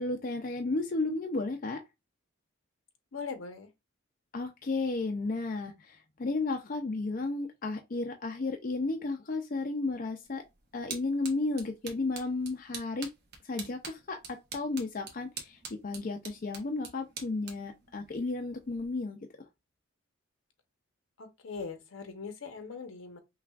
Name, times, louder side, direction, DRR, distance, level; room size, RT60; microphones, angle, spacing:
voice 1, 0.0-1.8 4.3-10.4 10.7-13.1 13.4-19.2, left 3 dB, 40° left, 0.5 m, -33 dB
voice 2, 3.1-3.7 21.2-23.2, left 5 dB, 75° left, 0.9 m, -41 dB
sound 1, 10.2-18.9, right 5 dB, 50° right, 1.0 m, -47 dB
5.7 x 2.3 x 2.3 m
head